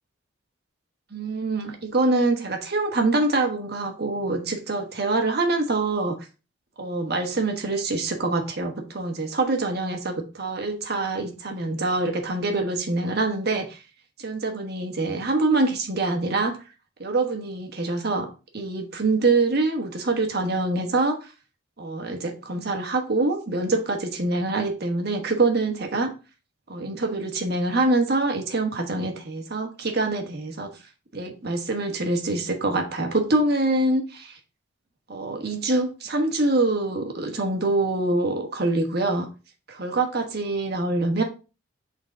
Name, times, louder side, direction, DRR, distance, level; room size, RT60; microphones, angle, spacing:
voice 1, 1.1-6.2 6.8-13.8 14.2-16.6 17.0-18.3 18.5-21.3 21.8-26.1 26.7-30.7 31.1-34.4 35.1-39.3 39.7-41.2, right 2 dB, 50° right, 4 dB, 1.2 m, -25 dB
6.3 x 4.0 x 3.8 m, 0.32 s
head